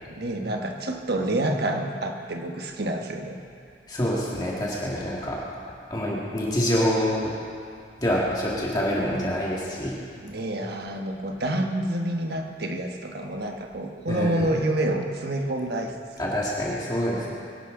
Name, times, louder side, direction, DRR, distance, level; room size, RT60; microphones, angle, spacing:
voice 1, 0.1-3.4 10.1-16.0, right 1 dB, 60° right, 3 dB, 1.3 m, -28 dB
voice 2, 3.9-5.4 5.9-7.3 8.0-9.9 14.1-14.6 16.2-17.3, equal, 25° left, -5 dB, 2.0 m, -26 dB
23.5 x 11.5 x 3.9 m, 2.4 s
head